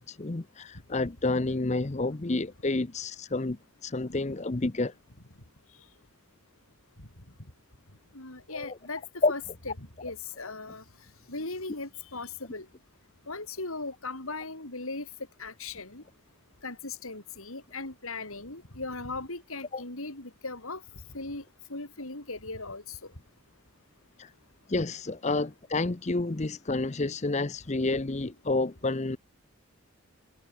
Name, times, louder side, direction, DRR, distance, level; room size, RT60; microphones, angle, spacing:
voice 1, 0.0-4.9 8.5-8.7 9.2-9.3 19.7-19.8 24.2-24.3 24.7-29.2, left 2 dB, 30° left, 0.7 m, -29 dB
voice 2, 8.1-9.4 9.8-10.8 11.3-12.7 13.3-15.1 15.4-16.0 16.6-20.8 21.1-21.4 21.7-23.1, left 3 dB, 70° left, 4.4 m, -38 dB
head